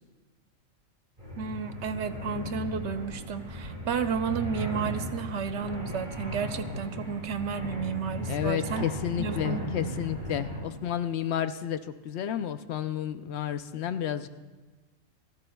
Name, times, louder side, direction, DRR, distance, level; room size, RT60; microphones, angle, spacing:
sound 1, 1.2-10.6, equal, 35° right, 6.6 m, -36 dB
voice 1, 1.4-8.8 9.2-9.6, right 6 dB, 65° right, 10 dB, 1.0 m, -32 dB
voice 2, 8.3-11.8 12.0-14.3, left 10 dB, 65° left, 10 dB, 0.8 m, -31 dB
29.0 x 13.5 x 2.3 m, 1.2 s
omnidirectional pair, 1.4 m